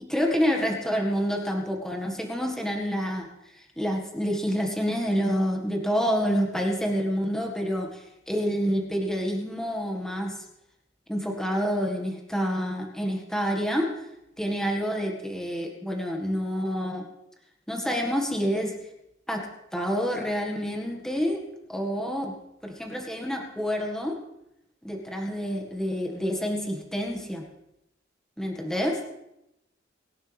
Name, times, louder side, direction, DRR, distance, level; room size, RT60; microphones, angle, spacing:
voice 1, 0.1-10.4 11.1-14.1 14.4-17.1 17.7-18.8 19.3-22.3 22.6-24.2 24.8-27.5 28.4-29.0, equal, 5° left, 1 dB, 1.8 m, -28 dB
23.5 x 11.5 x 3.5 m, 0.86 s
head